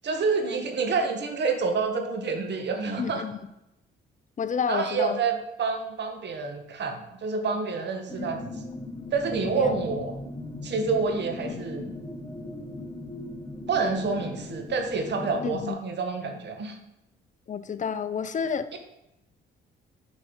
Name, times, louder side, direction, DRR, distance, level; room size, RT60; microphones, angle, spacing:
voice 1, 0.0-3.2 4.7-8.5 9.1-10.1 10.6-11.9 13.7-16.8 18.7-18.8, right 4 dB, 60° right, 5 dB, 1.8 m, -28 dB
voice 2, 3.0-3.4 4.4-5.2 8.2-8.7 9.5-9.8 11.5-11.6 15.4-15.8 17.5-18.8, left 6 dB, 40° left, 11 dB, 0.8 m, -31 dB
sound 1, 8.1-15.7, left 2 dB, 20° left, 1.3 m, -38 dB
7.6 x 6.0 x 7.2 m, 0.88 s
cardioid pair, 90°, 20 cm